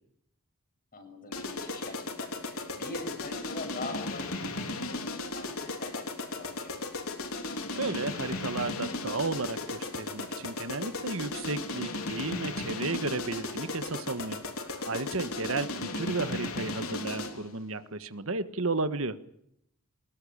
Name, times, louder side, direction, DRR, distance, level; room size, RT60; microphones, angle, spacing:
voice 1, 0.9-6.1 6.4-6.7 15.5-15.7, left 2 dB, 40° left, 6 dB, 6.5 m, -43 dB
sound 1, 1.3-17.5, left 2 dB, 70° left, 3.4 m, -36 dB
voice 2, 7.7-14.4 14.7-19.2, right 3 dB, 65° right, 11 dB, 1.5 m, -33 dB
23.5 x 21.0 x 8.8 m, 0.73 s
head